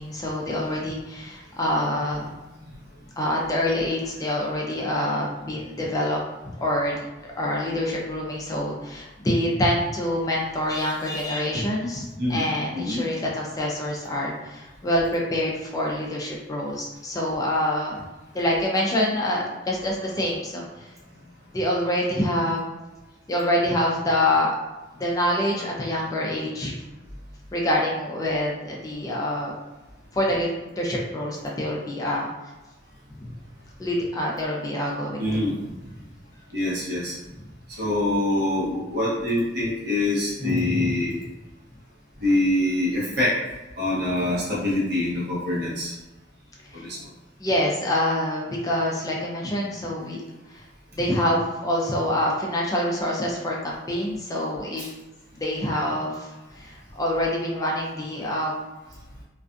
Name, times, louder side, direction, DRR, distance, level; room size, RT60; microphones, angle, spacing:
voice 1, 0.0-2.2 3.2-6.9 7.4-18.0 18.3-20.9 21.5-22.6 23.3-24.6 24.9-26.7 27.5-29.5 30.1-32.3 33.2-33.3 33.8-35.5 40.4-40.9 46.7-46.9 47.4-50.2 50.5-50.6 50.9-54.9 55.3-58.6, left 1 dB, 20° left, -3 dB, 0.4 m, -26 dB
voice 2, 2.2-2.8 12.2-12.4 12.7-13.0 35.2-35.5 36.5-37.1 37.8-41.2 42.2-43.4 43.8-45.9 46.7-47.0 54.8-54.9, left 1 dB, 60° right, -7 dB, 1.0 m, -25 dB
2.4 x 2.3 x 2.5 m, 1.1 s
head